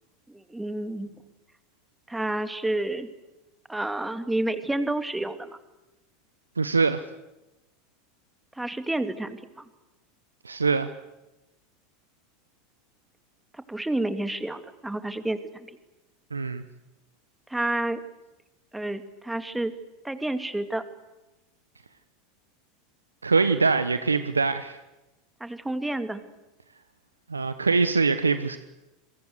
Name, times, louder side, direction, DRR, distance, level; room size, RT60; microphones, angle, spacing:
voice 1, 0.3-1.2 2.1-3.1 3.7-5.6 8.6-9.7 13.5-15.7 17.5-18.0 18.7-19.7 20.0-20.8 25.4-26.2, right 1 dB, 5° right, 10 dB, 2.3 m, -30 dB
voice 2, 6.6-7.0 10.4-10.9 16.3-16.6 23.2-24.8 27.3-28.6, right 4 dB, 85° right, 11 dB, 1.0 m, -23 dB
27.0 x 23.0 x 8.1 m, 1.0 s
figure-of-eight pair, 85°, 0 cm